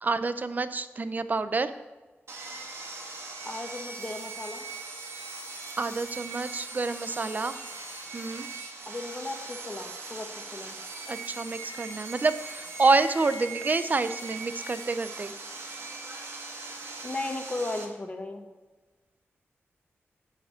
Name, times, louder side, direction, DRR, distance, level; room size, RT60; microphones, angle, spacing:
voice 1, 0.0-1.7 5.8-7.6 8.1-8.5 11.1-15.3, right 3 dB, 40° right, 11 dB, 0.6 m, -28 dB
Sawing, 2.3-17.8, right 3 dB, 70° right, 1.6 m, -40 dB
voice 2, 3.4-4.6 8.9-10.8 17.0-18.5, left 2 dB, 30° left, 5 dB, 1.2 m, -36 dB
9.4 x 5.0 x 7.9 m, 1.2 s
wide cardioid pair, 110°, 5 cm